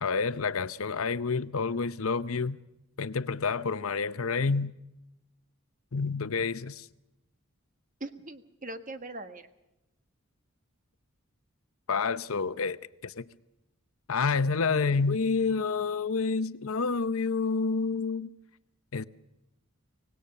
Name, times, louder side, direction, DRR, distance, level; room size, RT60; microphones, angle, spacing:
voice 1, 0.0-2.6 3.0-4.7 5.9-6.8 11.9-12.8 13.0-13.2 14.1-18.3 18.9-19.0, left 4 dB, 80° left, 0.8 m, -28 dB
voice 2, 8.0-9.5, right 2 dB, 35° right, 1.4 m, -41 dB
25.0 x 18.5 x 6.7 m
head